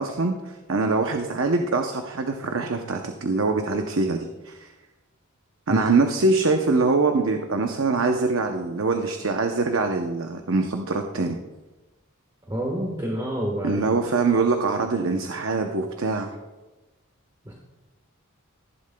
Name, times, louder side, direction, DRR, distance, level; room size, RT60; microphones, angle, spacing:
voice 1, 0.0-4.7 5.7-11.4 13.6-16.3, right 3 dB, 65° right, 4 dB, 0.7 m, -23 dB
voice 2, 12.5-14.1 17.4-17.5, equal, 15° right, -1 dB, 1.3 m, -29 dB
15.0 x 11.0 x 2.3 m, 1.1 s
head